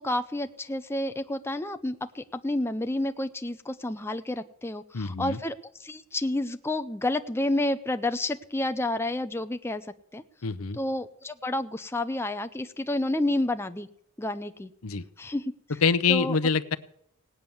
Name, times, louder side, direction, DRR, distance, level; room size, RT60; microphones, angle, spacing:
voice 1, 0.0-9.9 10.1-10.2 10.7-13.9 14.2-14.7 15.2-15.5 16.1-16.4, left 1 dB, 10° left, 8 dB, 0.6 m, -30 dB
voice 2, 4.9-5.4 10.4-10.8 14.8-15.0 15.8-16.8, left 5 dB, 80° left, 13 dB, 0.8 m, -25 dB
18.0 x 9.3 x 7.1 m, 0.69 s
head